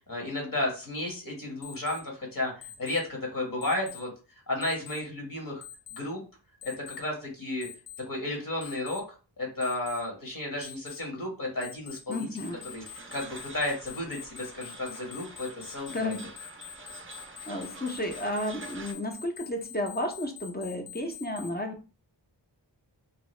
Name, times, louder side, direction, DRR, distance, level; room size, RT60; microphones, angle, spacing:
voice 1, 0.1-4.1 4.5-5.6 5.9-6.2 6.6-7.7 8.1-9.0 9.4-12.3 12.7-12.8 13.1-16.1, left 2 dB, 45° left, 0 dB, 1.2 m, -33 dB
Alarm, 1.6-2.0 2.6-3.0 3.6-4.0 4.6-5.0 5.6-6.0 6.6-7.0 7.6-8.0 8.6-9.0 9.6-10.0 10.6-11.0 11.6-21.5, left 9 dB, 70° left, 0.6 m, -44 dB
voice 2, 12.1-12.6 15.9-16.3 17.5-21.7, left 1 dB, 20° left, 3 dB, 0.6 m, -32 dB
sound 1, 12.4-18.9, right 3 dB, 30° right, 0.5 m, -47 dB
2.8 x 2.2 x 3.1 m, 0.34 s
wide cardioid pair, 55°, 45 cm